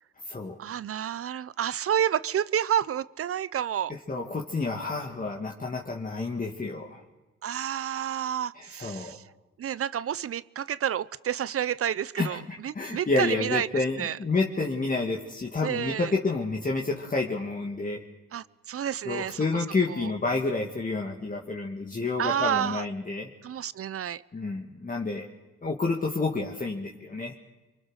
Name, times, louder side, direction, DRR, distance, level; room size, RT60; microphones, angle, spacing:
voice 1, 0.6-3.9 7.4-9.2 9.6-14.2 15.6-16.1 18.3-19.6 22.2-22.8 23.4-24.2, right 10 dB, 50° right, 19 dB, 0.7 m, -30 dB
voice 2, 4.1-7.0 8.6-9.2 12.2-12.4 12.7-18.0 19.1-23.3 24.3-25.2 25.6-27.4, left 3 dB, 25° left, 0 dB, 2.3 m, -29 dB
25.5 x 24.0 x 6.5 m, 1.1 s
cardioid pair, 90°, 30 cm